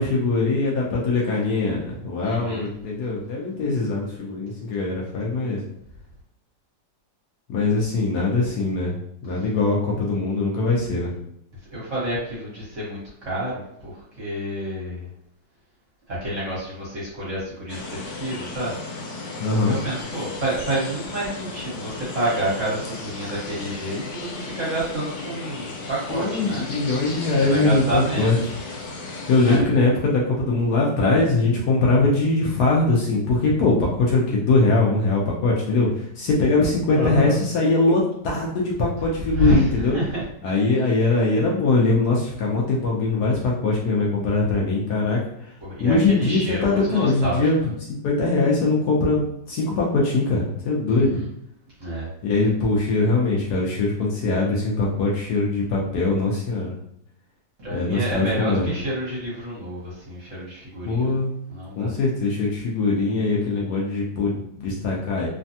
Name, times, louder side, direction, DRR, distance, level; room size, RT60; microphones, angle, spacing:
voice 1, 0.0-5.6 7.5-8.9 9.2-11.1 19.4-19.8 26.1-28.4 29.3-35.9 36.2-40.0 40.4-45.2 45.8-51.2 52.2-56.7 57.7-58.7 60.9-61.3 61.8-65.3, left 3 dB, 70° left, -3 dB, 1.1 m, -22 dB
voice 2, 2.2-2.7 11.7-13.9 14.2-15.1 16.1-18.7 19.7-26.6 27.4-28.4 29.4-29.8 36.9-37.3 39.3-40.2 45.6-47.7 50.9-51.3 51.8-52.1 57.6-61.2 61.5-61.9, right 1 dB, 45° right, -7 dB, 1.4 m, -28 dB
sound 1, 17.7-29.6, left 3 dB, 85° left, 1.4 m, -35 dB
3.3 x 2.2 x 2.7 m, 0.74 s
omnidirectional pair, 2.0 m